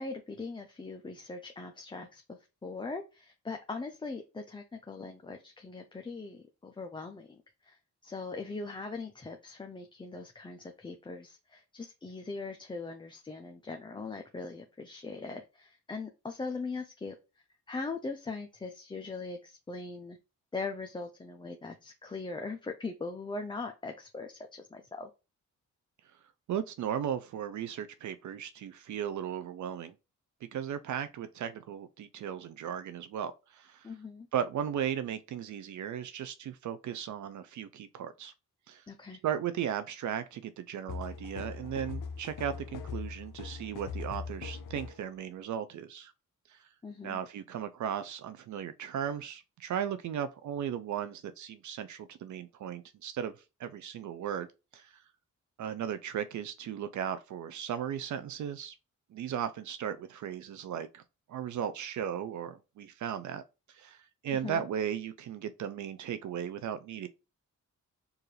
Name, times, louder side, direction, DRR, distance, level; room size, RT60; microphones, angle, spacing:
voice 1, 0.0-7.4 7.6-7.8 8.0-17.2 17.7-20.2 20.5-25.1 33.8-34.3 38.9-39.2 46.8-47.2 64.4-64.6, left 3 dB, 15° left, 0.5 m, -40 dB
voice 2, 26.5-29.9 30.5-33.9 34.3-38.3 38.7-38.8 39.2-46.1 46.5-46.7 47.0-53.3 53.6-54.5 54.7-54.9 55.6-58.7 59.1-61.0 61.3-63.4 63.7-67.1, right 9 dB, 70° right, 0.5 m, -36 dB
sound 1, 40.9-45.1, left 5 dB, 80° left, 0.6 m, -41 dB
4.7 x 2.6 x 3.1 m
cardioid pair, 90°, 31 cm